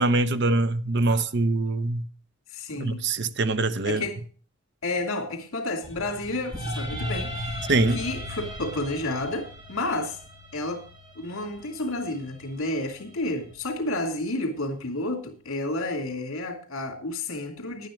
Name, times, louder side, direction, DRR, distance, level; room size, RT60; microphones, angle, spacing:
voice 1, 0.0-2.1 2.8-4.0 7.7-8.0, right 2 dB, 50° right, 0.7 m, -23 dB
voice 2, 2.5-3.1 3.8-4.2 4.8-10.2 10.5-10.9 11.2-17.9, left 2 dB, 65° left, 2.6 m, -31 dB
sound 1, 5.8-14.0, equal, 20° right, 2.0 m, -37 dB
11.0 x 9.0 x 5.1 m
head